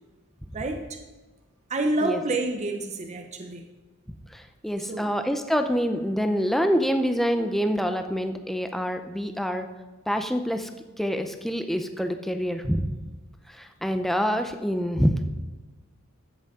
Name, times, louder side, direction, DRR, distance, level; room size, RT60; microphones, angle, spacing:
voice 1, 0.5-1.0 1.7-3.7 4.8-5.1, right 2 dB, 35° right, 3 dB, 0.7 m, -28 dB
voice 2, 4.3-9.7 10.1-10.7 11.0-12.8 13.5-15.3, equal, ahead, 7 dB, 0.6 m, -26 dB
13.0 x 8.0 x 3.7 m, 1.2 s
head